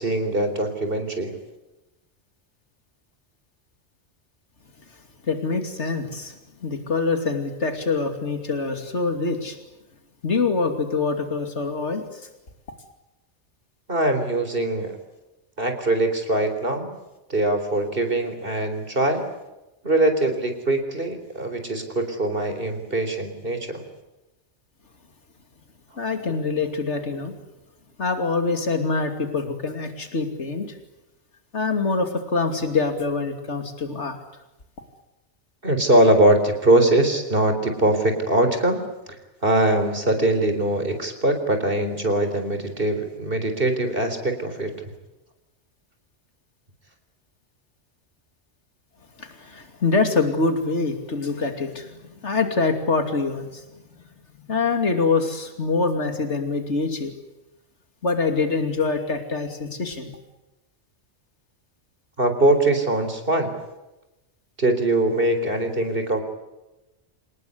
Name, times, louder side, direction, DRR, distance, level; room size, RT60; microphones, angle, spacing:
voice 1, 0.0-1.3 13.9-14.9 15.6-16.9 17.3-19.2 19.8-23.8 35.6-38.8 39.4-44.7 62.2-63.5 64.6-66.2, right 1 dB, 55° right, 6 dB, 4.2 m, -22 dB
voice 2, 5.3-6.3 6.6-9.5 10.2-12.0 26.0-27.3 28.0-30.7 31.5-34.2 49.2-49.3 49.5-51.9 52.2-53.4 54.5-57.1 58.0-60.1, left 4 dB, 85° left, 6 dB, 3.0 m, -24 dB
27.5 x 19.5 x 9.7 m, 1.0 s
omnidirectional pair, 1.2 m